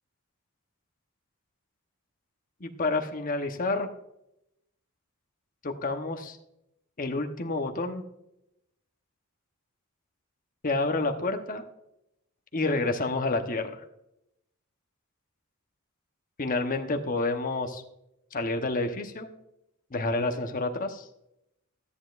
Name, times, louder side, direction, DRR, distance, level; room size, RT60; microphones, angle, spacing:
voice 1, 2.6-3.9 5.6-6.4 7.0-8.0 10.6-11.6 12.5-13.7 16.4-17.8 18.3-19.3 19.9-21.1, left 2 dB, 40° left, 4 dB, 1.0 m, -29 dB
14.0 x 10.0 x 2.5 m, 0.83 s
head